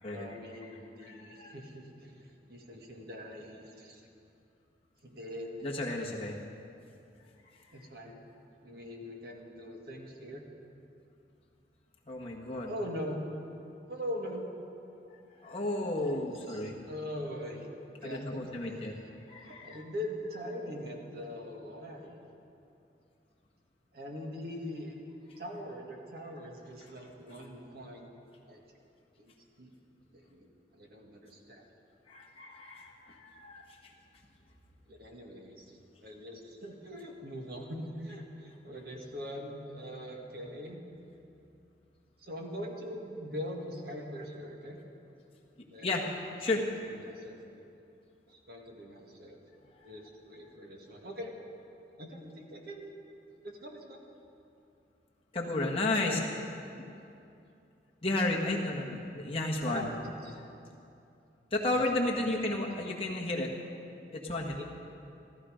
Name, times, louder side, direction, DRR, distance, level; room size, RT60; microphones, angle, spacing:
voice 1, 0.1-4.1 5.0-5.5 7.7-8.2 8.6-10.4 12.7-13.2 13.9-14.5 16.5-17.7 18.0-18.9 19.4-22.1 23.9-25.0 25.4-28.1 28.5-28.6 29.2-29.3 29.6-29.7 30.1-30.5 30.7-31.7 34.9-35.6 36.0-40.8 42.2-44.8 45.7-46.0 46.5-46.7 47.0-47.3 48.3-49.4 49.8-51.3 52.0-53.0 53.4-54.0 56.0-56.2 59.6-60.4 61.7-62.6 64.5-64.6, equal, 55° right, 0 dB, 1.8 m, -42 dB
voice 2, 1.0-1.6 5.6-6.4 12.1-12.7 15.4-16.8 18.0-18.9 19.3-19.8 32.1-33.7 45.8-46.0 46.4-46.6 55.3-56.2 58.0-59.9 61.5-63.5 64.1-64.6, left 2 dB, 30° left, -2 dB, 1.5 m, -32 dB
14.5 x 14.0 x 5.1 m, 2.7 s
head